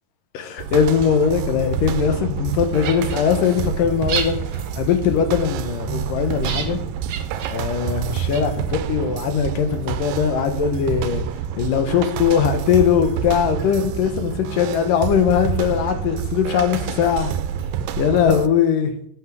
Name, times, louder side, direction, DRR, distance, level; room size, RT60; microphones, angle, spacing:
voice 1, 0.3-4.4 4.7-6.8 7.5-11.3 11.6-17.3 18.0-18.9, left 7 dB, 75° left, 8 dB, 2.9 m, -20 dB
sound 1, 0.6-18.5, right 9 dB, 85° right, 2.4 m, -28 dB
sound 2, 2.5-9.9, right 6 dB, 65° right, 1.2 m, -35 dB
10.5 x 8.0 x 6.5 m, 0.69 s
omnidirectional pair, 4.1 m